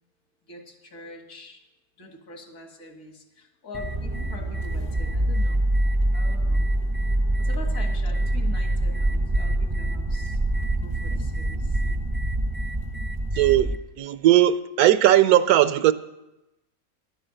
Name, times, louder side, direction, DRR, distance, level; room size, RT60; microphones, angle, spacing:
voice 1, 0.5-1.6 2.0-5.6 6.1-6.7 7.4-12.0, left 3 dB, 65° left, 3 dB, 2.2 m, -43 dB
sound 1, 3.7-13.8, right 1 dB, 25° right, 0.5 m, -25 dB
voice 2, 13.4-15.9, right 12 dB, 75° right, 14 dB, 1.1 m, -18 dB
11.0 x 8.9 x 7.6 m, 0.94 s
omnidirectional pair, 1.6 m